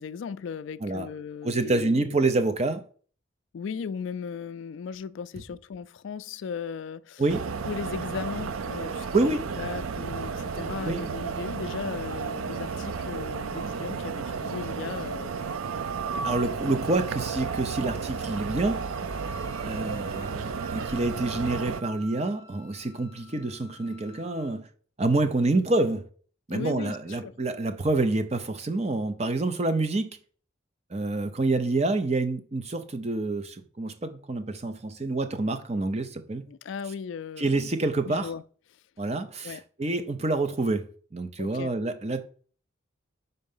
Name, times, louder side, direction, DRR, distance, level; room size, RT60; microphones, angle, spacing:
voice 1, 0.0-2.2 3.5-7.2 7.6-15.3 16.1-16.3 26.5-27.3 36.5-37.7 38.0-38.4 39.4-39.6 41.4-41.7, left 6 dB, 70° left, 0.3 m, -37 dB
voice 2, 1.4-2.9 7.2-7.5 9.1-9.5 10.8-11.1 16.2-18.8 19.6-24.7 25.0-26.1 26.5-30.2 30.9-36.5 37.4-38.3 39.0-42.2, right 2 dB, 30° right, 0.6 m, -27 dB
sound 1, 7.3-21.8, right 5 dB, 90° right, 0.5 m, -33 dB
Wind instrument woodwind instrument, 16.4-24.6, right 2 dB, 15° right, 1.9 m, -50 dB
5.6 x 3.9 x 5.4 m
head